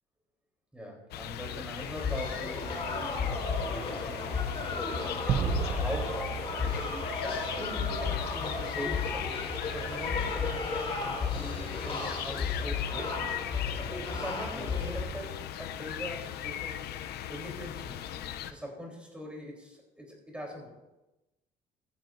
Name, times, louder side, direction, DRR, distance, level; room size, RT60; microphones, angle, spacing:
voice 1, 0.7-6.3 7.2-9.3 9.7-11.1 11.4-13.4 14.1-16.8 17.3-18.0 18.5-20.7, equal, 5° right, -1 dB, 3.6 m, -42 dB
sound 1, 1.1-18.5, left 11 dB, 70° left, 0.6 m, -39 dB
sound 2, 1.8-15.0, left 4 dB, 30° left, 2.8 m, -34 dB
sound 3, 5.3-7.9, right 9 dB, 50° right, 0.5 m, -33 dB
14.0 x 10.5 x 2.6 m, 1.0 s
cardioid pair, 110°, 17 cm